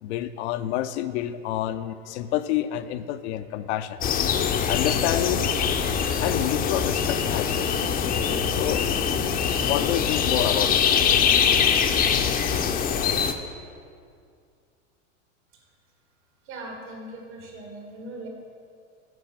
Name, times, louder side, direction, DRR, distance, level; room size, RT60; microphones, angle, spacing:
voice 1, 0.0-4.0 4.7-5.5 6.2-7.7 8.5-8.9 9.7-10.8, left 12 dB, 65° left, 11 dB, 0.6 m, -28 dB
sound 1, 4.0-13.3, left 7 dB, 25° left, 0.6 m, -23 dB
voice 2, 16.4-18.3, right 2 dB, 65° right, 0 dB, 2.3 m, -39 dB
9.3 x 5.4 x 7.5 m, 2.3 s
hypercardioid pair, 105°, 37 cm